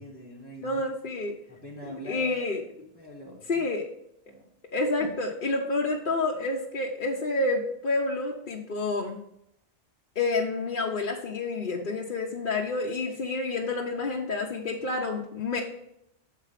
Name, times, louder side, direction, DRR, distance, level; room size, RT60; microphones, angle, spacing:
voice 1, 0.0-0.8 1.5-2.4 2.9-3.7 4.3-4.4 5.0-5.1, equal, 10° right, -4 dB, 1.5 m, -43 dB
voice 2, 0.6-1.3 1.9-2.6 3.5-3.9 4.7-9.2 10.2-15.6, left 3 dB, 50° left, -2 dB, 1.0 m, -29 dB
7.2 x 4.6 x 5.7 m, 0.77 s
omnidirectional pair, 1.1 m